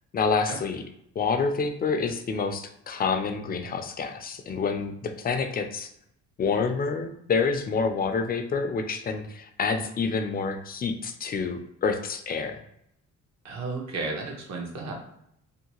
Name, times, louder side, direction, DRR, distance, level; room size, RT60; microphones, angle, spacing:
voice 1, 0.1-0.8 1.2-5.9 6.4-12.5, left 5 dB, 30° left, 6 dB, 0.4 m, -28 dB
voice 2, 13.4-14.9, right 3 dB, 65° right, 0 dB, 0.9 m, -33 dB
2.7 x 2.2 x 2.9 m, 0.75 s
cardioid pair, 90°, 30 cm